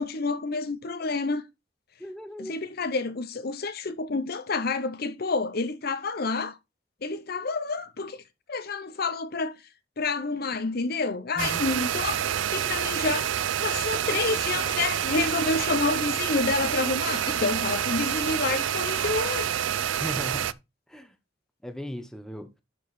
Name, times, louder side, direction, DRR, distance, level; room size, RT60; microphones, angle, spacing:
voice 1, 0.0-1.4 2.4-6.6 7.0-8.2 8.5-9.6 10.0-19.5, left 3 dB, 50° left, 0.7 m, -29 dB
voice 2, 2.0-2.5 11.4-11.6 20.0-20.6 20.9-21.1 21.6-22.5, equal, 5° left, 1.0 m, -37 dB
sound 1, 11.4-20.5, right 9 dB, 75° right, 0.5 m, -28 dB
11.5 x 4.7 x 4.2 m
head